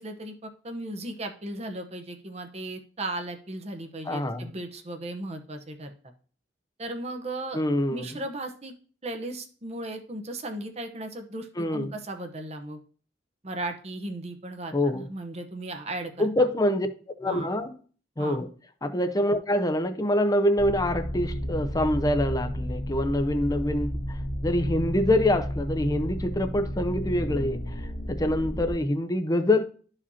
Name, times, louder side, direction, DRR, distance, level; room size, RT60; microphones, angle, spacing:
voice 1, 0.0-5.9 6.8-7.6 7.9-8.7 9.0-12.8 13.4-16.5 17.3-17.5 18.2-18.4, right 1 dB, 35° right, 0.9 m, -36 dB
voice 2, 4.1-4.5 7.5-8.1 11.6-11.9 14.7-15.0 16.2-16.9 17.2-17.8 18.2-18.5 18.8-27.6 28.1-29.6, left 1 dB, 20° left, 0.6 m, -25 dB
sound 1, 20.6-28.7, equal, 90° left, 1.7 m, -32 dB
12.5 x 5.0 x 2.8 m
head